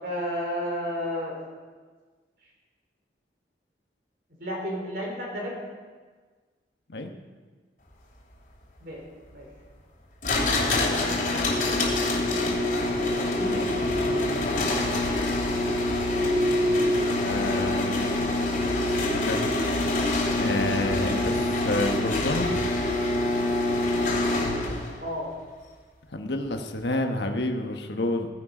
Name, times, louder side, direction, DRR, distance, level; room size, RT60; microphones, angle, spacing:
voice 1, 0.0-1.3 4.4-5.5 8.8-9.0 9.3-9.5 10.9-13.7 25.0-25.3, equal, 60° right, -2 dB, 4.1 m, -34 dB
Closing automatic garage door, 10.2-24.9, left 2 dB, 45° left, 2.8 m, -25 dB
voice 2, 17.2-18.3 18.8-19.5 20.4-22.5 26.1-28.3, left 1 dB, 75° left, 5 dB, 1.2 m, -29 dB
15.0 x 10.0 x 5.0 m, 1.4 s
head